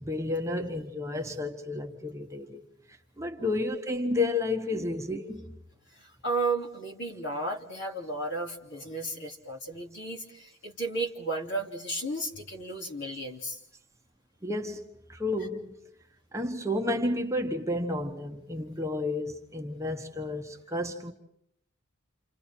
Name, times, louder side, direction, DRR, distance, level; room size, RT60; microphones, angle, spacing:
voice 1, 0.0-2.6 3.2-5.5 14.4-15.7 16.3-21.1, left 2 dB, 15° right, 1.2 m, -31 dB
voice 2, 5.9-13.6, right 2 dB, 55° left, 3.0 m, -34 dB
29.5 x 28.0 x 4.5 m
head